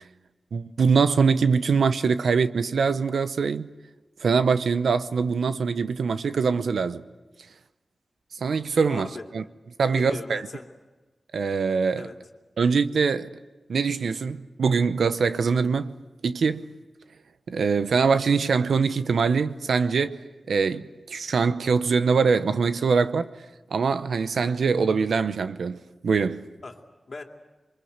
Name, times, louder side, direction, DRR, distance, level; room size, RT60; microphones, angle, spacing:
voice 1, 0.5-3.7 4.2-7.0 8.4-9.1 9.3-9.4 9.8-10.4 11.3-12.1 12.6-13.3 13.7-15.9 16.2-16.7 17.5-20.2 20.5-23.3 23.7-26.4, right 5 dB, 85° right, 0.9 m, -23 dB
voice 2, 8.9-9.2 9.9-10.7 12.0-12.2 26.6-27.2, left 3 dB, 50° left, 2.7 m, -38 dB
28.0 x 23.0 x 8.1 m
wide cardioid pair, 100°, 0 cm